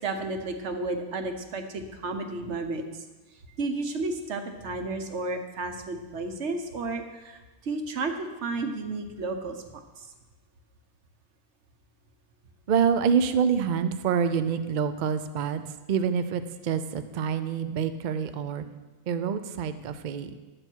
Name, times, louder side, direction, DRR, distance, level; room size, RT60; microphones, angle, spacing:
voice 1, 0.0-3.0 3.6-9.6 10.0-10.1, right 3 dB, 55° right, 5 dB, 1.2 m, -32 dB
voice 2, 12.7-15.6 15.9-18.6 19.1-20.3, right 7 dB, 70° right, 10 dB, 0.4 m, -26 dB
12.0 x 7.7 x 4.5 m, 1.2 s
omnidirectional pair, 1.6 m